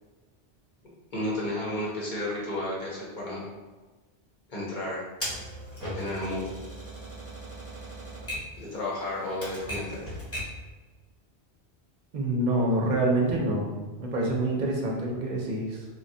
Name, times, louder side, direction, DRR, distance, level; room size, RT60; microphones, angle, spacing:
voice 1, 1.1-3.5 4.5-5.0 5.9-6.4 8.6-10.1, left 1 dB, 50° left, -5 dB, 0.9 m, -32 dB
Typewriter, 5.2-10.6, equal, 15° left, 0.6 m, -38 dB
voice 2, 12.1-15.9, right 1 dB, 55° right, -1 dB, 0.6 m, -27 dB
3.3 x 2.2 x 2.6 m, 1.3 s
omnidirectional pair, 1.1 m